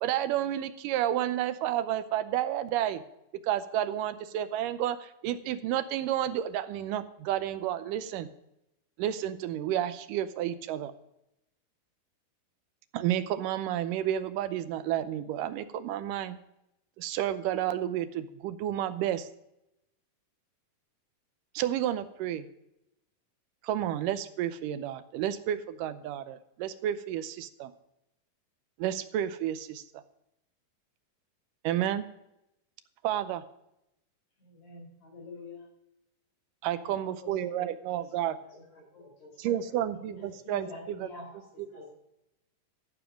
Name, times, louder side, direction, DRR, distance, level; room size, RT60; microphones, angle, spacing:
voice 1, 0.0-3.0 3.4-8.3 9.0-10.9 12.9-16.4 17.0-19.3 21.6-22.5 23.6-27.7 28.8-29.8 31.6-32.1 33.0-33.4 36.6-38.4 39.4-41.1 41.6-41.7, right 11 dB, 85° right, 12 dB, 2.3 m, -31 dB
voice 2, 34.4-35.7 36.7-37.7 38.3-38.5 38.9-39.1 39.9-40.1 40.4-41.4 41.7-41.9, left 3 dB, 45° left, 0 dB, 4.9 m, -47 dB
voice 3, 38.5-40.8 41.7-41.9, left 2 dB, 60° left, -3 dB, 4.9 m, -54 dB
14.5 x 7.0 x 5.1 m, 0.85 s
omnidirectional pair, 3.8 m